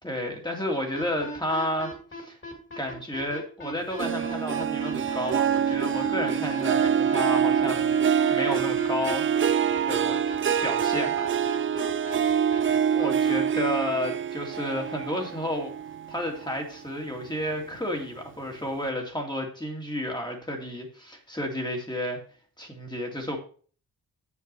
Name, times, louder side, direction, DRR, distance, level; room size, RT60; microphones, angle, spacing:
voice 1, 0.0-2.4 2.8-8.0 8.3-9.6 9.9-10.3 10.6-11.3 12.9-15.7 16.1-22.2 22.6-23.4, left 1 dB, 10° left, 1 dB, 2.2 m, -31 dB
sound 1, 0.9-13.4, left 2 dB, 30° left, 3.0 m, -39 dB
Harp, 4.0-16.7 17.1-17.5 18.0-18.1, right 8 dB, 35° right, 0.4 m, -26 dB
7.1 x 7.0 x 4.6 m, 0.42 s
wide cardioid pair, 105°, 37 cm